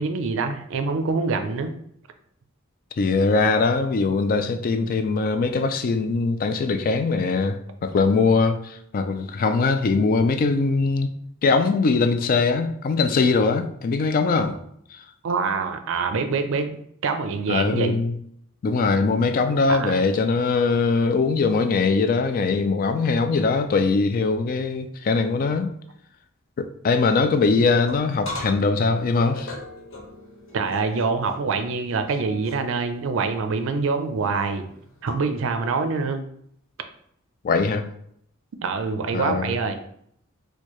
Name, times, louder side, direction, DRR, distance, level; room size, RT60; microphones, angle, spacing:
voice 1, 0.0-1.7 15.2-16.8 17.0-17.9 19.7-20.0 30.5-34.6 35.0-36.2 38.6-39.8, right 4 dB, 65° right, 0.4 m, -25 dB
voice 2, 3.0-11.1 11.4-14.6 14.9-15.0 17.5-18.1 18.6-25.7 26.6-29.5 37.4-37.9 39.1-39.5, left 4 dB, 45° left, 0.3 m, -21 dB
sound 1, 27.3-35.5, left 2 dB, 65° left, 1.2 m, -41 dB
4.4 x 2.2 x 3.0 m
head